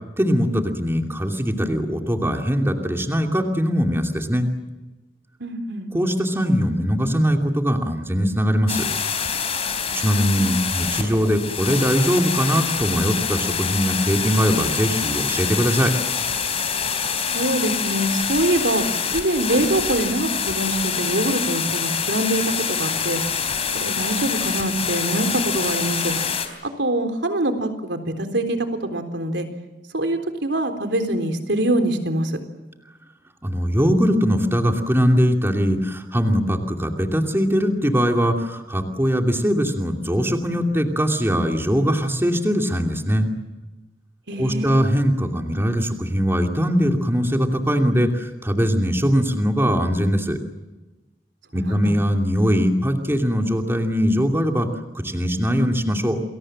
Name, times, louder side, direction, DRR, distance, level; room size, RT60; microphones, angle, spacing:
voice 1, 0.2-4.5 5.9-8.9 9.9-16.0 33.4-43.3 44.4-50.4 51.5-54.7 54.9-56.2, equal, 15° right, 3 dB, 2.7 m, -21 dB
voice 2, 5.4-5.9 9.9-10.5 17.3-18.9 19.1-22.4 22.7-23.2 23.7-26.1 26.8-29.5 29.9-32.3 44.3-44.8 51.5-51.9, right 1 dB, 75° right, 6 dB, 3.8 m, -24 dB
sound 1, 8.7-26.5, left 6 dB, 35° left, 3.7 m, -25 dB
29.0 x 22.0 x 7.6 m, 1.1 s
head